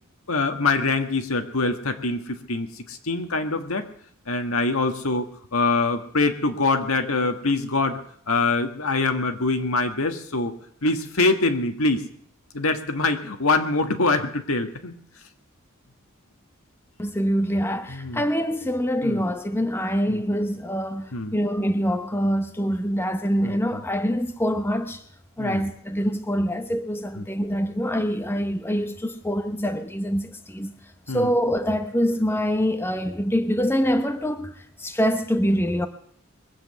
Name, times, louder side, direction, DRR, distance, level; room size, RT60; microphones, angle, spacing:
voice 1, 0.3-2.2 2.5-3.8 4.3-8.0 8.3-10.5 10.8-12.0 12.5-14.9 17.9-18.2 19.0-19.2 20.1-20.2 21.1-21.4 23.4-23.8 25.4-25.6 27.2-27.3 31.1-31.3, left 3 dB, 80° left, 1.7 m, -24 dB
voice 2, 17.0-25.0 25.4-30.7 31.1-34.5 34.8-35.9, equal, 10° left, 0.9 m, -25 dB
22.0 x 8.0 x 7.8 m
head